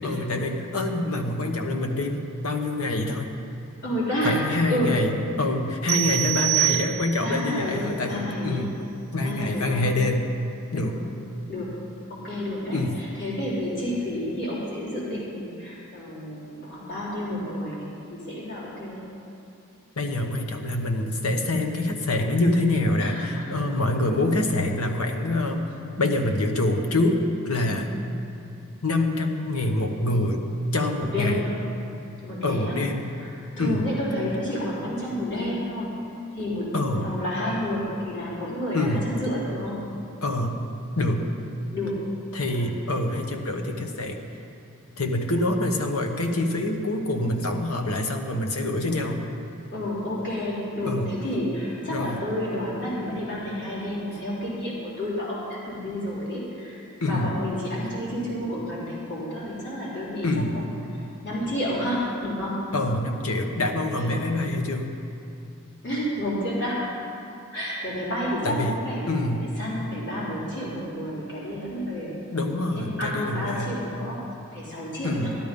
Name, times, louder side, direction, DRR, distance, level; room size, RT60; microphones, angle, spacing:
voice 1, 0.0-3.3 4.2-8.7 9.1-10.2 10.7-10.9 12.7-13.0 20.0-25.7 26.0-27.9 28.8-30.4 30.7-31.4 32.4-33.1 33.6-33.9 36.7-37.1 38.7-39.0 40.2-40.5 41.0-41.2 42.3-44.2 45.0-49.2 50.9-51.1 51.9-52.2 57.0-57.3 60.2-60.7 62.7-64.9 68.4-68.8 69.1-69.4 72.3-73.7 75.0-75.4, left 2 dB, 85° left, 4 dB, 1.2 m, -25 dB
voice 2, 3.8-4.4 4.7-5.0 7.2-8.7 9.2-9.8 10.7-10.9 11.5-11.7 12.1-19.1 23.0-23.4 27.6-27.8 31.0-31.6 32.2-32.8 33.2-35.9 36.3-39.8 41.7-42.0 42.5-42.8 49.7-60.6 61.2-62.6 63.9-64.3 65.8-66.8 67.5-69.1 69.4-72.1 72.8-74.2 74.5-75.3, equal, 55° left, -8 dB, 3.8 m, -30 dB
sound 1, 5.9-7.4, right 21 dB, 70° right, 0.7 m, -25 dB
12.5 x 12.0 x 5.3 m, 2.6 s
head